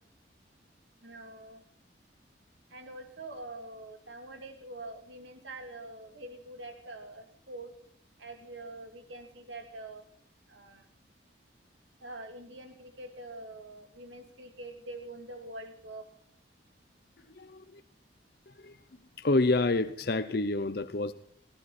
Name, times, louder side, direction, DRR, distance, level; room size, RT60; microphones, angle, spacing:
voice 1, 1.0-1.6 2.7-7.7 8.2-10.0 10.5-10.8 12.0-16.1, right 2 dB, 80° right, 5 dB, 2.9 m, -45 dB
voice 2, 17.3-17.8 18.5-18.8 19.2-21.1, left 2 dB, 55° left, 10 dB, 0.7 m, -28 dB
19.5 x 16.0 x 4.3 m, 0.67 s
head